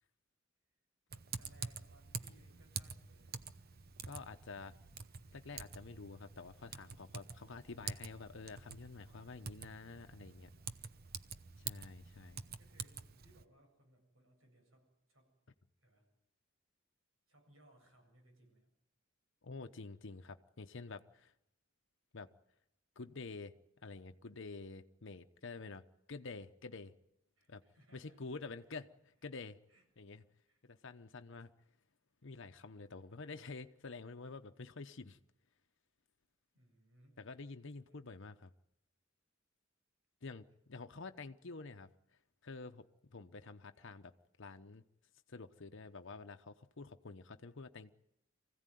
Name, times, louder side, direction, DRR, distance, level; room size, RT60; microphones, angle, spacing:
Typing, 1.1-13.4, right 6 dB, 50° right, 0.9 m, -48 dB
voice 1, 1.1-3.4 10.1-10.8 12.6-15.3 15.8-16.1 17.3-18.7 27.4-28.2 29.7-29.8 30.5-30.6 36.5-37.4 37.9-38.0, right 1 dB, 80° right, 7.8 m, -67 dB
voice 2, 4.0-4.7 5.3-10.5 11.6-12.4 19.4-21.3 22.1-22.3 23.0-23.5 23.8-25.8 26.1-26.9 27.5-27.6 27.9-29.6 30.0-30.2 30.7-31.5 32.2-35.2 37.2-38.5 40.2-41.9 42.4-44.1 44.4-44.8 45.3-47.9, left 3 dB, 65° left, 0.9 m, -49 dB
24.5 x 16.0 x 9.3 m
head